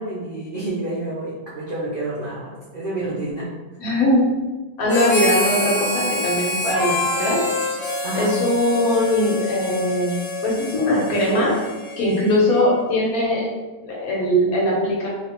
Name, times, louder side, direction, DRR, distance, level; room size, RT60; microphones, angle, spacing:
voice 1, 0.0-3.5 8.0-8.3, right 2 dB, 90° right, -7 dB, 0.4 m, -29 dB
voice 2, 3.8-4.2 4.8-7.4 8.1-11.5 12.0-13.5 13.8-15.1, left 1 dB, 65° left, -4 dB, 1.2 m, -20 dB
Harmonica, 4.9-12.6, left 2 dB, 80° left, 1.4 m, -27 dB
3.2 x 2.5 x 2.8 m, 1.2 s
omnidirectional pair, 1.8 m